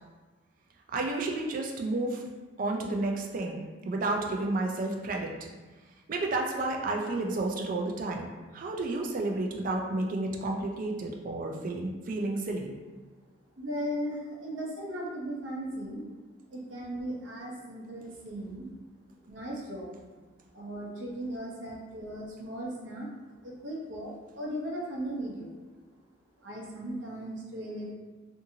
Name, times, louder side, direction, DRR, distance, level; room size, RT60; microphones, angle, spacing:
voice 1, 0.9-2.2 2.6-5.3 6.1-12.7, right 2 dB, 45° right, 1 dB, 0.4 m, -31 dB
voice 2, 13.6-16.0 16.5-18.7 19.3-20.2 20.5-23.1 23.4-25.5 26.4-27.9, equal, 80° right, -3 dB, 0.7 m, -37 dB
2.6 x 2.6 x 2.7 m, 1.3 s
head